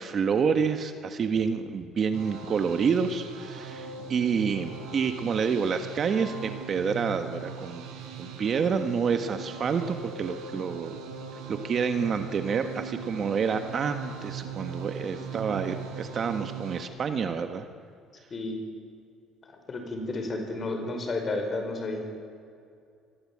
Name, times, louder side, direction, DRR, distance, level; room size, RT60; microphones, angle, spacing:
voice 1, 0.0-7.9 8.2-11.0 11.5-17.7, right 6 dB, 35° right, 8 dB, 1.5 m, -28 dB
sound 1, 2.1-16.8, right 6 dB, 80° right, 5.1 m, -40 dB
voice 2, 19.7-22.1, left 2 dB, 25° left, 5 dB, 5.2 m, -31 dB
26.5 x 21.5 x 8.7 m, 2.4 s
cardioid pair, 150°, 0 cm